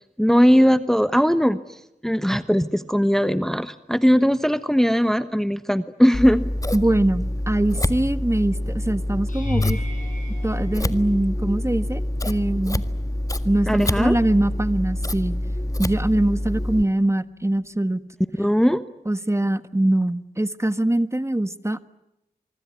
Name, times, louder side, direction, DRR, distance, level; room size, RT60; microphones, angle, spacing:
voice 1, 0.2-6.4 13.7-14.2 18.4-18.9, equal, ahead, 12 dB, 1.1 m, -19 dB
Scissors, 6.1-16.8, left 1 dB, 20° left, 1.7 m, -26 dB
voice 2, 6.7-9.8 10.4-12.8 13.4-15.4 15.8-18.0 19.1-21.8, right 1 dB, 15° right, 13 dB, 1.4 m, -23 dB
sound 1, 9.3-11.6 12.3-12.7 13.1-13.2 17.6-17.7, left 3 dB, 50° left, 7.1 m, -31 dB
25.0 x 24.0 x 9.6 m, 0.90 s
cardioid pair, 40°, 17 cm